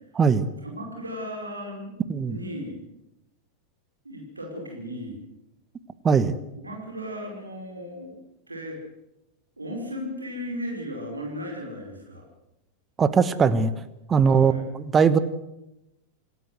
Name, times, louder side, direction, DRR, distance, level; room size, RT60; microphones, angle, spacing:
voice 1, 0.6-1.9 2.3-2.7 4.0-5.2 6.6-8.1 8.5-8.8 9.6-12.2 14.2-14.6, equal, 80° right, 0 dB, 5.1 m, -36 dB
voice 2, 13.0-13.7 14.1-15.2, right 6 dB, 20° right, 14 dB, 1.4 m, -20 dB
26.5 x 14.0 x 8.0 m, 0.90 s
figure-of-eight pair, 90°, 0 cm